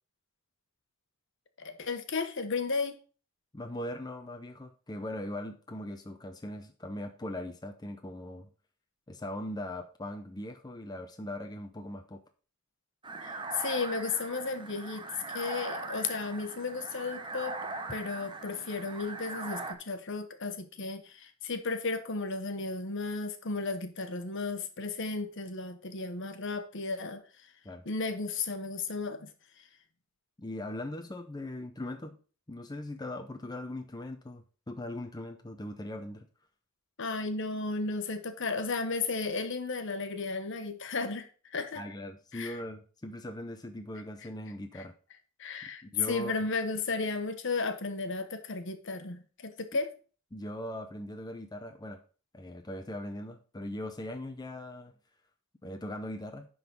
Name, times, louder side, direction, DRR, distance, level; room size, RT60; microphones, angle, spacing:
voice 1, 1.6-2.9 13.2-17.6 17.9-27.5 27.8-29.3 29.6-29.7 37.0-41.8 42.3-42.6 44.7-44.8 45.4-49.9, left 4 dB, 60° left, 1.1 m, -34 dB
voice 2, 3.5-8.5 9.1-12.2 27.6-27.8 30.4-32.2 32.5-36.3 41.8-44.9 45.6-46.4 50.3-52.0 52.3-54.9 55.6-56.5, left 1 dB, 20° left, 0.6 m, -40 dB
sound 1, 13.0-19.7, right 3 dB, 20° right, 0.8 m, -40 dB
10.5 x 4.0 x 5.3 m
head